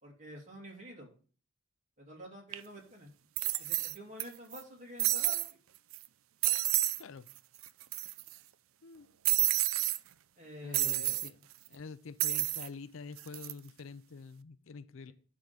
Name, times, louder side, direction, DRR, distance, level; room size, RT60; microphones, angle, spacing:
voice 1, 0.0-1.1 2.0-3.1 3.6-5.6 10.4-11.4, equal, 35° right, 2.7 m, -48 dB
sound 1, 2.5-2.6 3.4-4.2 4.5-4.6 5.0-5.5 5.9-6.1 6.4-7.0 7.3-7.4 7.6-8.3 9.2-10.0 10.7-11.3 12.2-12.7 13.2-13.5, right 16 dB, 80° right, 0.4 m, -30 dB
voice 2, 10.6-11.3 11.7-15.1, left 4 dB, 75° left, 0.5 m, -47 dB
10.5 x 3.8 x 6.8 m
head